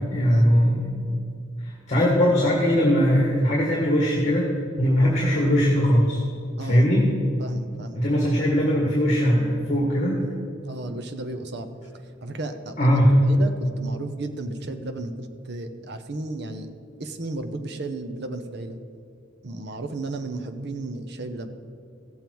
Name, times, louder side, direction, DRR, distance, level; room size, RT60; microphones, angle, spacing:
voice 1, 0.1-1.0 1.6-4.5 4.8-6.2 6.6-7.0 7.9-10.2 12.8-13.1, equal, 35° left, -2 dB, 1.6 m, -20 dB
voice 2, 6.6-6.9 7.4-8.0 10.6-11.7 12.2-12.8 13.3-16.7 17.0-18.8 19.4-21.5, right 2 dB, 55° right, 7 dB, 0.7 m, -33 dB
15.5 x 7.1 x 4.5 m, 2.5 s
head